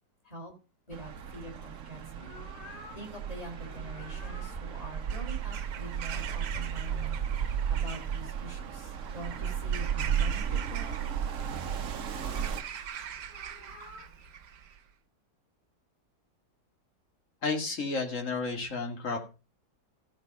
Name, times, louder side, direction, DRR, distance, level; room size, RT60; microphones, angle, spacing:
voice 1, 0.9-2.3 2.6-2.7 3.0-11.1, right 2 dB, 20° left, 1 dB, 3.5 m, -44 dB
sound 1, 0.9-12.6, right 8 dB, 55° right, 1.1 m, -34 dB
sound 2, 2.2-3.1 3.5-4.6 6.6-7.5 8.4-8.5 8.9-9.6 10.3-11.2 11.9-12.6 13.2-14.1, left 2 dB, 70° left, 5.6 m, -52 dB
Bird vocalization bird call bird song / Crow, 4.9-14.8, right 8 dB, 75° right, 1.6 m, -43 dB
voice 2, 17.4-19.2, left 4 dB, 45° left, 3 dB, 2.4 m, -31 dB
14.5 x 5.1 x 5.3 m, 0.31 s
omnidirectional pair, 1.8 m